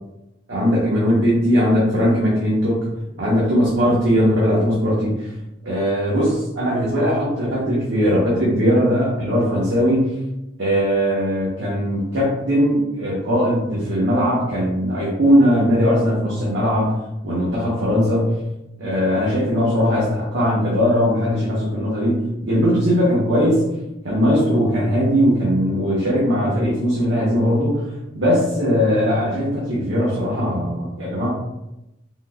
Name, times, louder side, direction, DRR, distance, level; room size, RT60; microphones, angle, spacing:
voice 1, 0.5-2.9 3.2-5.3 5.6-10.1 10.6-18.4 18.8-23.7 24.0-27.9 28.1-31.3, equal, 70° right, -7 dB, 0.9 m, -19 dB
3.8 x 2.6 x 2.2 m, 0.91 s
head